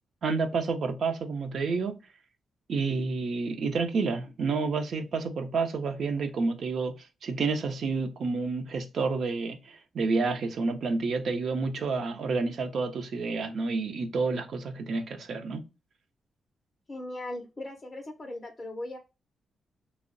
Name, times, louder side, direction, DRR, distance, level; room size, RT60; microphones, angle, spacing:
voice 1, 0.2-2.0 2.7-15.6, right 4 dB, 60° right, 0.5 m, -29 dB
voice 2, 16.9-19.0, left 1 dB, 20° left, 0.4 m, -38 dB
2.6 x 2.0 x 2.5 m
wide cardioid pair, 130°, 0 cm